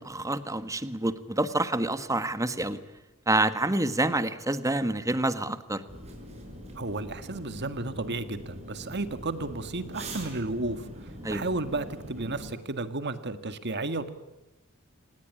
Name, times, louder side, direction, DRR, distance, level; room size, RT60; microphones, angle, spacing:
voice 1, 0.0-2.8 3.3-5.8 11.2-11.4, right 2 dB, 15° right, 12 dB, 1.5 m, -27 dB
sound 1, 5.9-12.5, right 1 dB, 30° right, 6.4 m, -43 dB
voice 2, 6.8-10.9 11.3-14.1, right 2 dB, 50° right, 11 dB, 1.9 m, -33 dB
27.0 x 19.5 x 9.9 m, 0.99 s
head